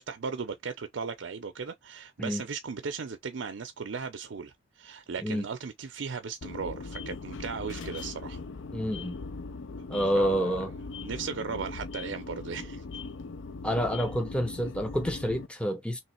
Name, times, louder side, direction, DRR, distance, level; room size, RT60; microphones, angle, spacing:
voice 1, 0.0-8.4 10.1-10.7 11.0-12.8, right 5 dB, 65° right, 0.5 m, -37 dB
sound 1, 6.4-15.5, left 3 dB, 65° left, 0.5 m, -40 dB
voice 2, 8.7-9.2 9.9-10.7 13.6-16.0, equal, 5° left, 0.7 m, -28 dB
3.2 x 3.1 x 4.3 m
head